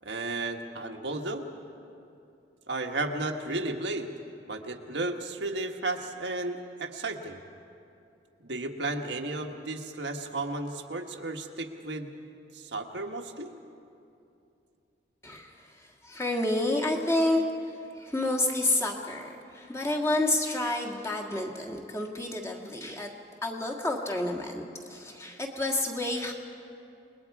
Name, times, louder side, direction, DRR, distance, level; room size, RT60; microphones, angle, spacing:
voice 1, 0.0-1.5 2.7-4.1 4.5-7.4 8.4-12.1 12.5-13.5, right 2 dB, 85° right, 2 dB, 1.5 m, -33 dB
voice 2, 15.8-17.4 18.0-23.1 23.4-26.3, left 2 dB, 15° left, 0 dB, 1.6 m, -29 dB
28.0 x 21.0 x 4.8 m, 2.7 s
head